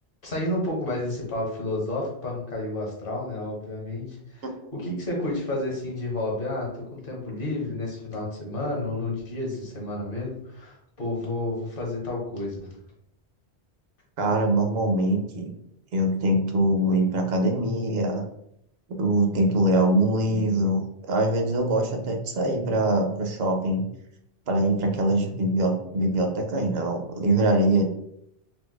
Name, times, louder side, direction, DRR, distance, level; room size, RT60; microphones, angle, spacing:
voice 1, 0.2-4.4 4.7-12.8, left 2 dB, 55° left, -2 dB, 1.2 m, -31 dB
voice 2, 14.2-15.5 15.9-18.2 18.9-20.8 21.1-23.8 24.5-27.8, right 1 dB, 70° right, 4 dB, 0.8 m, -23 dB
4.4 x 2.2 x 2.2 m, 0.76 s
omnidirectional pair, 1.1 m